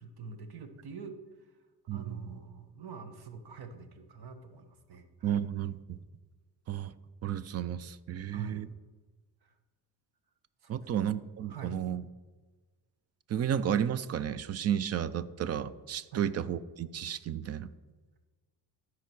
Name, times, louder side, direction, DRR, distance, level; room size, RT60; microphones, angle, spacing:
voice 1, 0.0-1.5 1.9-5.4 8.3-8.6 9.4-9.5 10.6-10.9 11.5-11.8 16.1-16.3, right 4 dB, 60° right, 8 dB, 1.2 m, -45 dB
voice 2, 1.9-2.4 5.2-6.0 6.7-6.9 7.2-8.7 10.7-12.0 13.3-17.7, right 9 dB, 35° right, 16 dB, 0.4 m, -32 dB
12.0 x 4.9 x 6.0 m, 1.3 s
cardioid pair, 125°, 44 cm